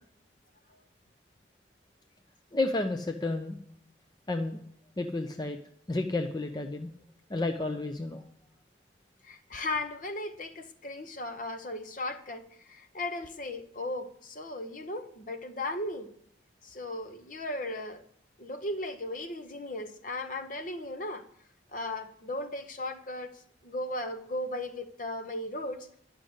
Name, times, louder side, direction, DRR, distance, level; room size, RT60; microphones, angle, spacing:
voice 1, 2.5-3.6 4.3-4.6 5.0-5.6 5.9-6.9 7.3-8.2, left 2 dB, 20° left, 6 dB, 0.5 m, -31 dB
voice 2, 9.2-12.4 12.7-16.1 16.6-18.0 18.4-21.2 21.7-23.4 23.6-25.9, left 1 dB, 45° left, 8 dB, 0.9 m, -36 dB
11.0 x 6.3 x 8.1 m, 0.69 s
head